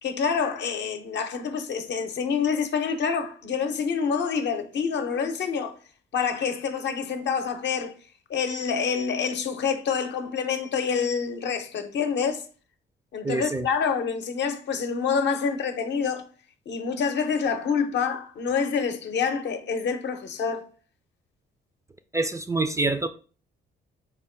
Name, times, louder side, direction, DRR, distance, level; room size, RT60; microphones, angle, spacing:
voice 1, 0.0-5.7 6.1-7.9 8.3-12.4 13.1-16.3 16.7-20.6, left 6 dB, 65° left, 0.7 m, -27 dB
voice 2, 13.2-13.7 22.1-23.1, right 2 dB, 15° right, 0.3 m, -26 dB
4.4 x 2.1 x 4.3 m
cardioid pair, 90°, 20 cm